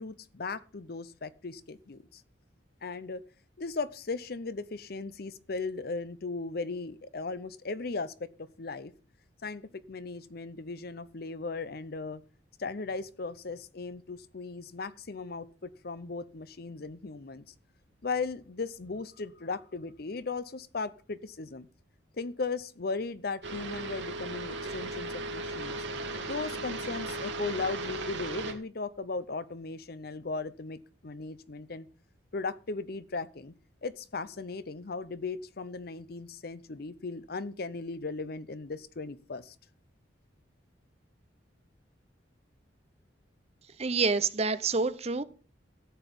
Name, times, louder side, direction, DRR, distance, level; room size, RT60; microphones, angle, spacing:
voice 1, 0.0-2.2 2.8-3.2 3.6-8.3 8.6-8.9 9.4-12.2 12.6-17.4 18.0-21.7 22.2-25.8 26.3-31.9 32.3-33.5 33.8-39.5, left 4 dB, 55° left, 0.7 m, -37 dB
sound 1, 23.4-28.5, right 2 dB, 80° right, 2.2 m, -36 dB
voice 2, 43.8-45.2, right 4 dB, 35° right, 0.8 m, -27 dB
13.5 x 8.2 x 5.3 m
head